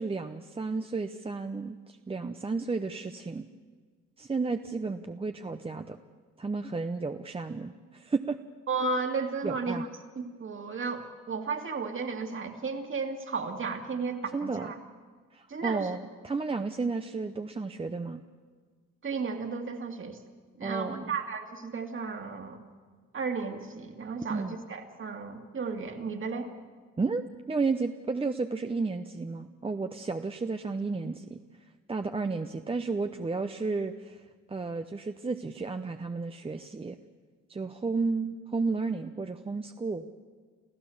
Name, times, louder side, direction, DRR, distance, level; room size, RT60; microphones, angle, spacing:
voice 1, 0.0-3.4 4.2-6.0 6.4-8.4 9.4-9.8 14.3-14.7 15.3-18.2 20.6-21.1 24.3-24.5 27.0-31.4 31.9-37.0 37.5-40.1, right 4 dB, 20° right, 7 dB, 0.7 m, -32 dB
voice 2, 8.7-9.8 10.2-14.8 15.5-15.9 19.0-20.2 20.6-22.6 23.1-26.5, right 4 dB, 40° right, 4 dB, 2.4 m, -34 dB
29.0 x 14.0 x 7.2 m, 1.5 s
cardioid pair, 90°, 30 cm